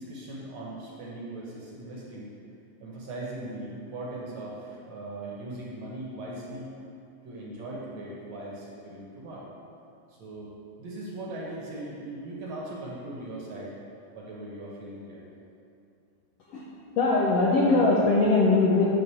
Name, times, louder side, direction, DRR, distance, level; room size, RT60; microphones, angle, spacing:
voice 1, 0.0-2.3 2.8-6.7 7.2-9.5 10.1-10.5 10.8-13.8 14.1-15.2, right 1 dB, 60° right, -5 dB, 2.1 m, -39 dB
voice 2, 17.0-18.9, left 3 dB, 80° left, -4 dB, 1.4 m, -21 dB
9.2 x 3.8 x 6.8 m, 2.6 s
omnidirectional pair, 3.9 m